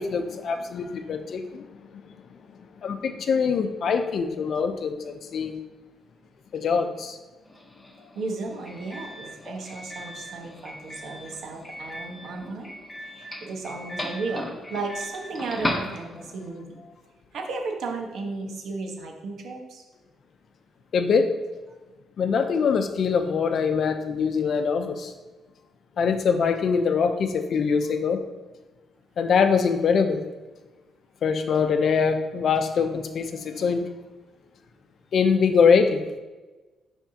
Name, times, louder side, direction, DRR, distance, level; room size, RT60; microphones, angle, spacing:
voice 1, 0.0-1.6 1.9-2.0 2.8-5.5 6.5-7.2 20.9-21.3 22.2-25.1 26.0-28.2 29.2-30.2 31.2-33.8 35.1-36.0, left 6 dB, 60° left, 7 dB, 0.6 m, -23 dB
Doorbell, 7.4-16.5, left 1 dB, 15° left, 1.1 m, -36 dB
voice 2, 8.1-12.7 13.0-16.8 17.3-19.8, right 3 dB, 70° right, 2 dB, 1.2 m, -34 dB
10.5 x 3.5 x 2.8 m, 1.2 s
cardioid pair, 90°, 0 cm